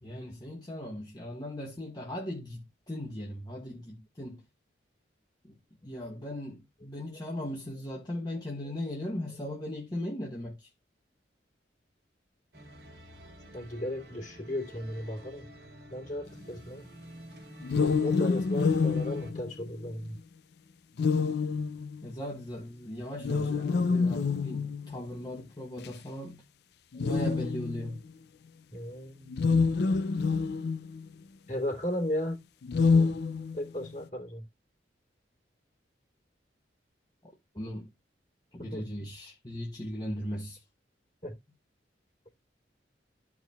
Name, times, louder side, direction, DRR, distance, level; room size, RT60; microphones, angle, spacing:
voice 1, 0.0-4.4 5.4-5.5 5.8-10.7 22.0-26.4 27.0-28.0 37.5-37.9 38.5-40.6, left 1 dB, 20° left, 1.1 m, -38 dB
sound 1, 12.5-19.3, equal, 60° right, 1.9 m, -50 dB
voice 2, 13.5-15.4 15.9-16.9 17.8-20.2 26.9-27.1 28.7-29.4 31.5-32.4 32.9-33.1 33.5-34.5 38.6-38.8 41.2-41.4, left 1 dB, 40° left, 2.7 m, -35 dB
sound 2, 17.6-20.1 21.0-22.2 23.2-25.0 25.8-25.9 26.9-28.0 29.3-31.1 32.6-33.9, left 4 dB, 60° left, 0.4 m, -27 dB
13.5 x 4.7 x 2.3 m
head